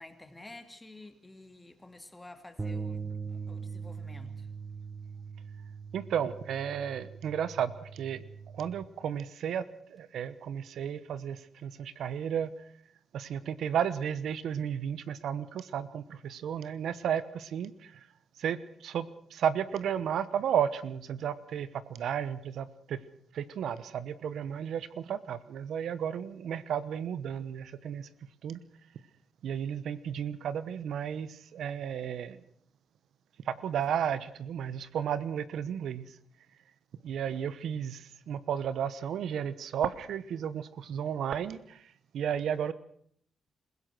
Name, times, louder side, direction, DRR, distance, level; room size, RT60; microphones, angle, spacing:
voice 1, 0.0-3.0 3.3-4.5, left 2 dB, 15° left, 7 dB, 2.6 m, -50 dB
sound 1, 2.6-8.8, right 5 dB, 20° right, 1.1 m, -41 dB
voice 2, 5.9-8.2 8.5-9.6 9.9-12.5 13.1-18.1 18.4-23.0 23.3-28.1 28.4-28.6 29.4-32.4 33.4-36.1 37.0-42.7, right 8 dB, 80° right, 16 dB, 1.0 m, -33 dB
27.0 x 16.5 x 6.2 m, 0.63 s
cardioid pair, 90°, 0 cm